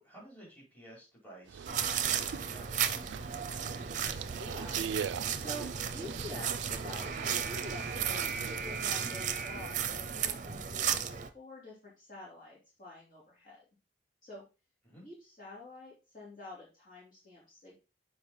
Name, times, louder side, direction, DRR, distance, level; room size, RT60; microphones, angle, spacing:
voice 1, 0.0-3.8 14.8-15.0, right 1 dB, 10° left, -4 dB, 4.0 m, -54 dB
sound 1, 1.5-8.9, right 7 dB, 80° right, 0.3 m, -42 dB
sound 2, 1.7-11.3, right 7 dB, 45° right, 0.6 m, -34 dB
voice 2, 4.4-13.6 14.2-14.4 15.0-17.7, left 1 dB, 50° left, -5 dB, 2.8 m, -48 dB
7.0 x 4.8 x 3.7 m, 0.29 s
head